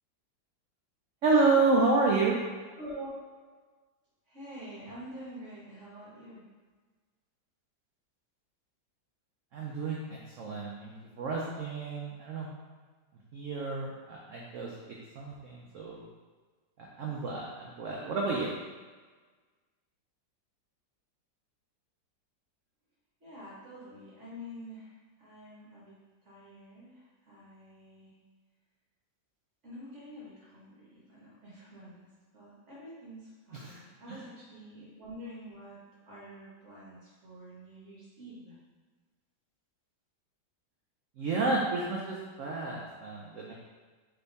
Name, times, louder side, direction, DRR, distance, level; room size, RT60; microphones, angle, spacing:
voice 1, 1.2-2.4 9.5-12.5 13.3-14.7 15.2-16.0 17.0-18.5 33.5-33.8 34.1-34.2 41.2-43.5, right 3 dB, 90° right, -2 dB, 0.6 m, -30 dB
voice 2, 2.8-3.1 4.3-6.4 23.2-24.9 25.2-25.9 26.2-28.1 29.6-32.0 32.3-35.8 36.1-38.6, equal, 45° right, -7 dB, 1.3 m, -47 dB
3.4 x 3.3 x 4.0 m, 1.4 s
omnidirectional pair, 2.0 m